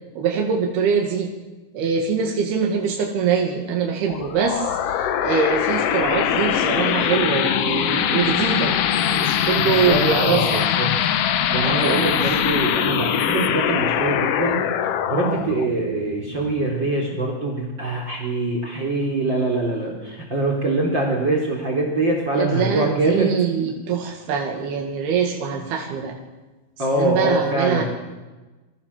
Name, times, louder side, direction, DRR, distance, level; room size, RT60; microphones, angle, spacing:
voice 1, 0.2-1.3 1.7-8.8 9.0-10.6 11.7-12.0 15.3-15.5 22.3-26.2 26.9-27.8, right 6 dB, 90° right, 1 dB, 4.1 m, -23 dB
sound 1, 4.1-17.2, left 9 dB, 80° left, 1.4 m, -22 dB
voice 2, 9.5-10.9 11.5-14.6 15.1-23.3 26.8-27.8, right 2 dB, 30° right, 1 dB, 4.1 m, -23 dB
28.0 x 23.5 x 7.3 m, 1.2 s
omnidirectional pair, 4.4 m